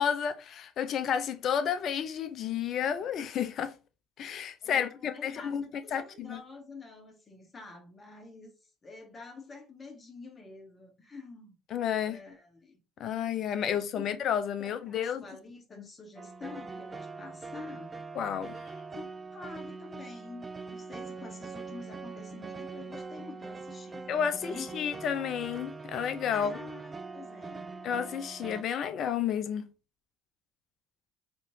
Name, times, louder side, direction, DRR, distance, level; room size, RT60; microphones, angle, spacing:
voice 1, 0.0-3.7 4.2-6.4 11.7-12.2 13.0-15.2 18.2-18.6 24.1-26.6 27.8-29.7, left 8 dB, 55° left, 0.6 m, -31 dB
voice 2, 4.6-11.5 12.0-12.8 13.9-14.2 14.6-17.9 18.9-24.8 26.3-27.7, left 3 dB, 30° left, 1.4 m, -47 dB
sound 1, 16.2-28.6, right 4 dB, 25° right, 0.4 m, -43 dB
4.2 x 3.1 x 2.8 m
hypercardioid pair, 65°, 0 cm